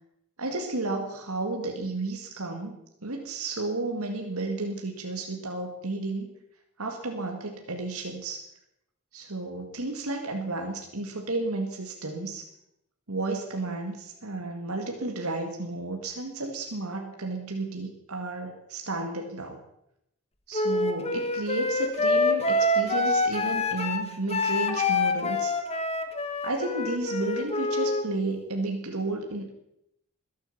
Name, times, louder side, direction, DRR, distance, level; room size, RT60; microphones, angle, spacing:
voice 1, 0.4-6.3 6.8-8.4 9.1-12.4 13.1-19.6 20.5-25.5 26.4-29.5, right 2 dB, 80° right, 3 dB, 2.0 m, -32 dB
Wind instrument woodwind instrument, 20.5-28.0, left 2 dB, 25° left, 1.4 m, -26 dB
21.0 x 8.8 x 7.2 m, 0.82 s
head